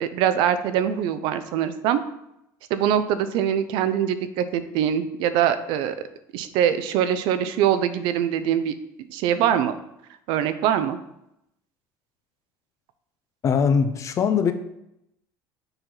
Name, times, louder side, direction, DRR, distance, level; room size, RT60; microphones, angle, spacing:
voice 1, 0.0-2.0 2.7-6.0 6.3-8.7 9.1-9.7 10.3-11.0, right 9 dB, 70° right, 11 dB, 0.6 m, -23 dB
voice 2, 13.4-14.5, left 6 dB, 35° left, 9 dB, 0.6 m, -21 dB
6.8 x 4.3 x 3.9 m, 0.82 s
supercardioid pair, 115°, 9 cm